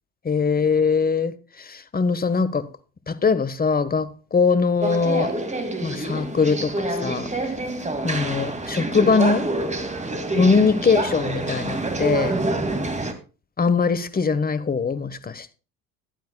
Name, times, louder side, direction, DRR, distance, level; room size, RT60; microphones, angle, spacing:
voice 1, 0.2-2.7 3.1-5.3 5.8-7.3 8.0-9.5 10.3-12.4 13.6-15.5, left 5 dB, 20° left, 1.1 m, -22 dB
sound 1, 4.8-13.1, right 2 dB, 15° right, 2.1 m, -27 dB
15.0 x 12.0 x 2.2 m
hypercardioid pair, 60°, 45 cm